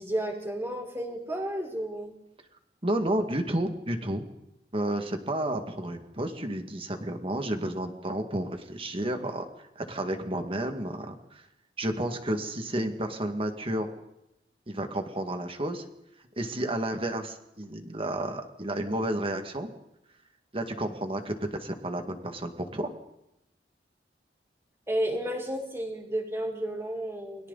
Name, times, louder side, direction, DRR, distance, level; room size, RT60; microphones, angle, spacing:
voice 1, 0.0-2.1 24.9-27.5, right 1 dB, 15° right, 1 dB, 4.6 m, -32 dB
voice 2, 2.8-4.2 4.7-9.5 9.8-11.4 11.8-13.9 14.7-15.8 16.4-19.7 20.5-22.9, right 1 dB, 30° right, 5 dB, 2.2 m, -31 dB
29.0 x 22.5 x 4.2 m, 0.84 s
head